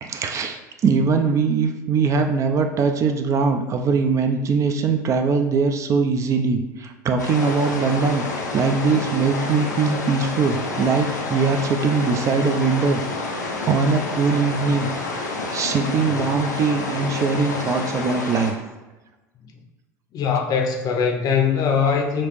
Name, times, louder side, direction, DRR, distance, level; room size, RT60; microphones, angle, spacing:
voice 1, 0.0-8.2 8.5-14.9 15.5-18.6, right 5 dB, 35° right, 5 dB, 0.4 m, -21 dB
sound 1, 7.2-18.5, left 3 dB, 85° left, 0.5 m, -29 dB
voice 2, 20.1-22.3, left 6 dB, 45° left, 2 dB, 0.6 m, -21 dB
4.1 x 2.5 x 3.0 m, 1.1 s
hypercardioid pair, 75°, 9 cm